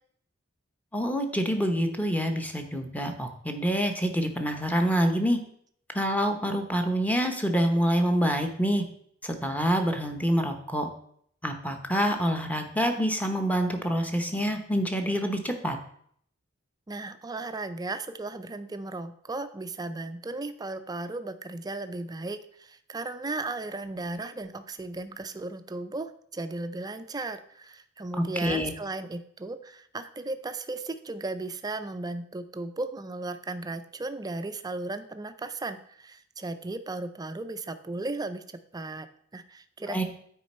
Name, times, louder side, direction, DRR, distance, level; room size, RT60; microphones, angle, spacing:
voice 1, 0.9-5.4 5.9-8.8 9.2-10.9 11.4-15.8 28.2-28.7 39.8-40.0, equal, 10° left, 4 dB, 0.8 m, -26 dB
voice 2, 16.9-38.4 38.7-39.1 39.3-40.0, right 2 dB, 20° right, 10 dB, 0.4 m, -36 dB
9.3 x 4.3 x 4.2 m, 0.65 s
head